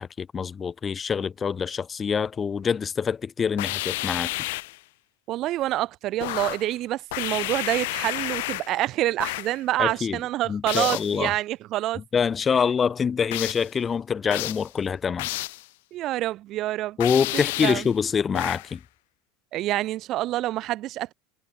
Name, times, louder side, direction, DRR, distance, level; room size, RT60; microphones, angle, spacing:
voice 1, 0.0-4.3 9.8-10.2 10.5-11.3 12.1-15.3 17.0-18.8, left 6 dB, 20° left, 2.1 m, -25 dB
sound 1, 3.6-4.8 6.2-6.7 7.1-8.8 9.2-9.6 10.7-11.2 13.3-13.7 14.3-14.7 15.2-15.7 17.0-17.9 18.3-18.7, left 20 dB, 75° left, 1.2 m, -31 dB
voice 2, 5.3-12.0 15.9-17.0 17.3-17.8 19.5-21.1, right 15 dB, 40° right, 1.9 m, -27 dB
supercardioid pair, 155°, 0 cm